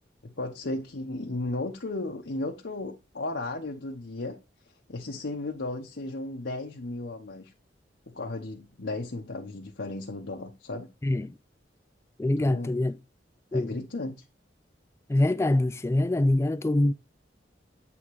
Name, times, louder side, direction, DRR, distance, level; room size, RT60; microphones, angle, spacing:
voice 1, 0.2-4.4 4.9-7.5 8.1-10.9 12.4-12.8 13.5-14.2, left 2 dB, 75° left, 0.9 m, -35 dB
voice 2, 12.2-12.9 13.5-13.7 15.1-16.9, left 1 dB, 15° left, 0.3 m, -24 dB
8.5 x 3.6 x 4.7 m
head